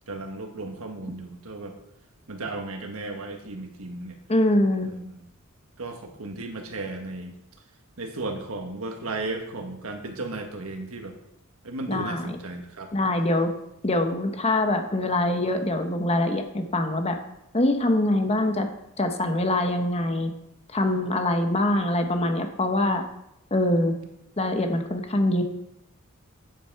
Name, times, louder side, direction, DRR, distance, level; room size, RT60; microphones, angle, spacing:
voice 1, 0.1-1.7 2.3-4.1 5.8-7.3 8.0-11.1 11.6-12.9, right 2 dB, 85° right, 4 dB, 1.5 m, -35 dB
voice 2, 4.3-4.9 11.9-12.4 12.9-13.5 13.8-17.2 17.5-18.7 19.0-20.3 20.7-23.0 23.5-24.0 24.4-25.4, left 1 dB, 30° left, 5 dB, 1.1 m, -24 dB
9.9 x 7.6 x 4.8 m, 0.85 s
head